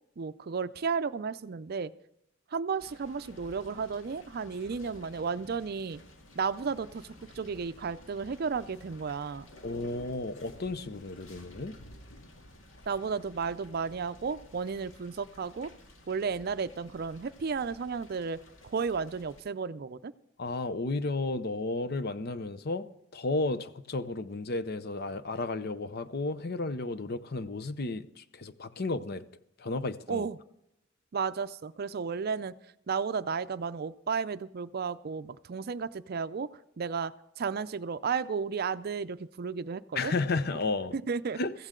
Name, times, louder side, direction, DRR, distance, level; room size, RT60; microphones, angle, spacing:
voice 1, 0.2-1.9 2.5-6.0 6.4-7.1 7.3-9.5 12.9-15.7 16.1-20.1 30.1-30.4 31.1-32.6 32.9-36.5 36.8-40.1 40.9-41.4, right 5 dB, 50° right, 0.5 m, -33 dB
sound 1, 2.8-19.4, left 1 dB, 85° left, 2.0 m, -53 dB
voice 2, 9.6-11.8 20.4-22.9 23.1-29.3 29.6-30.3 39.9-41.0 41.4-41.5, left 3 dB, 55° left, 0.7 m, -33 dB
15.5 x 14.5 x 3.8 m
head